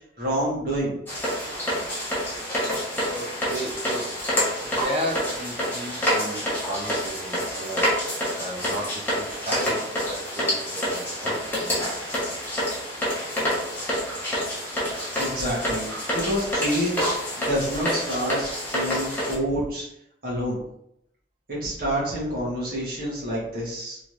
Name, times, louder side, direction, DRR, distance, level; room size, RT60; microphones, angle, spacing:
voice 1, 0.2-1.0 15.2-17.1 17.4-19.9 20.2-20.6 21.5-24.0, equal, 55° right, -6 dB, 1.3 m, -28 dB
sound 1, 1.1-19.3, equal, 10° left, 1.0 m, -27 dB
voice 2, 3.1-4.1 4.6-7.9 8.3-11.8, right 1 dB, 35° right, -3 dB, 0.7 m, -34 dB
3.7 x 3.1 x 2.5 m, 0.76 s
head